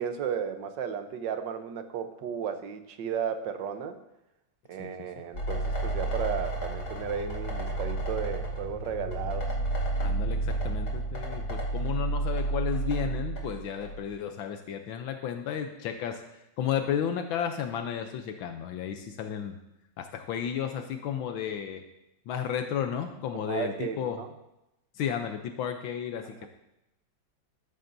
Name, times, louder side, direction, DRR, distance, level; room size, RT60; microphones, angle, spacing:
voice 1, 0.0-4.0 4.7-9.5 23.5-24.3 26.4-26.5, right 7 dB, 65° right, 8 dB, 1.5 m, -34 dB
sound 1, 5.3-14.0, right 2 dB, 55° left, 3.1 m, -31 dB
voice 2, 10.0-16.2 16.6-19.6 20.0-21.8 22.3-24.2 24.9-26.5, left 8 dB, 80° left, 6 dB, 1.5 m, -33 dB
13.5 x 12.5 x 2.7 m, 0.90 s
omnidirectional pair, 2.1 m